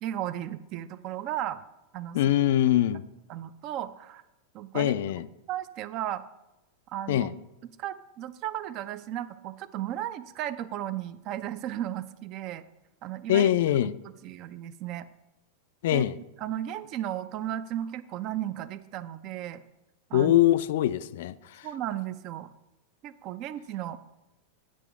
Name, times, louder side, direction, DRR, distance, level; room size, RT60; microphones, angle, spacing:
voice 1, 0.0-1.6 1.9-2.3 3.3-4.2 4.5-4.9 5.5-6.2 6.9-7.3 7.8-12.6 13.0-13.5 13.8-15.1 15.9-16.0 16.4-19.6 20.1-20.4 21.6-22.5 23.0-24.0, right 12 dB, 40° right, 0.4 m, -35 dB
voice 2, 2.1-3.0 4.7-5.3 7.1-7.3 13.3-14.0 15.8-16.1 20.1-21.7, left 12 dB, 55° left, 0.3 m, -23 dB
9.9 x 5.2 x 4.7 m
figure-of-eight pair, 90°, 0 cm